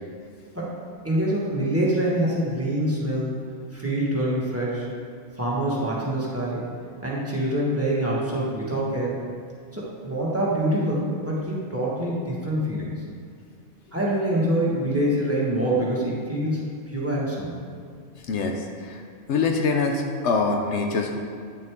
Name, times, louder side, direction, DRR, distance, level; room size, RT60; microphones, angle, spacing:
voice 1, 1.0-3.3 3.7-4.9 5.3-6.6 7.0-9.2 9.7-12.9 13.9-17.6, right 1 dB, 10° right, -6 dB, 1.5 m, -25 dB
voice 2, 18.3-19.0 19.3-21.2, left 4 dB, 70° left, 2 dB, 1.0 m, -24 dB
9.2 x 6.6 x 3.6 m, 2.2 s
omnidirectional pair, 1.3 m